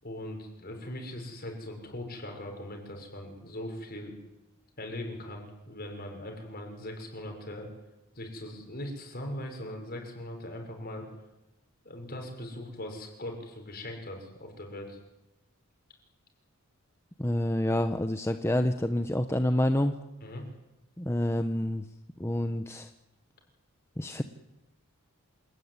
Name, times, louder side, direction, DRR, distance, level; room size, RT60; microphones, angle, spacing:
voice 1, 0.0-4.1 4.8-7.7 8.1-11.1 11.8-15.0 20.2-20.5, left 1 dB, 45° left, 3 dB, 6.3 m, -40 dB
voice 2, 17.2-19.9 21.0-21.8 22.2-22.9 24.0-24.2, left 1 dB, 10° left, 7 dB, 0.9 m, -28 dB
27.0 x 19.0 x 9.7 m, 0.95 s
head